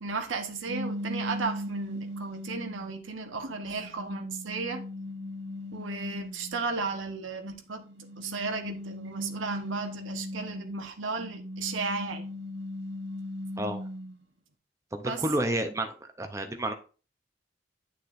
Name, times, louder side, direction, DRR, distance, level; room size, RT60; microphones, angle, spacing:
voice 1, 0.0-4.8 5.7-7.8 8.2-12.3 15.0-15.2, right 4 dB, 90° right, 1.1 m, -34 dB
sound 1, 0.7-2.9 3.5-6.6 7.8-10.7 11.2-14.1, equal, 65° right, 1.1 m, -38 dB
voice 2, 14.9-16.7, right 1 dB, 15° right, 0.6 m, -30 dB
9.6 x 6.7 x 2.5 m
head